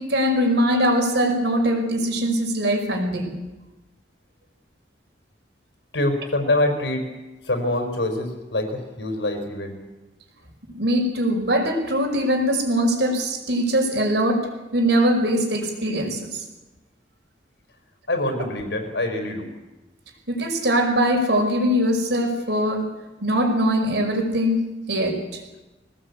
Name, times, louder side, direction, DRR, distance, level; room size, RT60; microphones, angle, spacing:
voice 1, 0.0-3.3 10.7-14.4 14.7-16.4 20.3-22.9 23.2-24.6 24.9-25.4, equal, 75° right, 3 dB, 5.3 m, -22 dB
voice 2, 5.9-7.1 7.4-9.8 18.1-19.5, left 1 dB, 90° left, 6 dB, 4.4 m, -25 dB
21.5 x 18.0 x 8.3 m, 1.1 s
head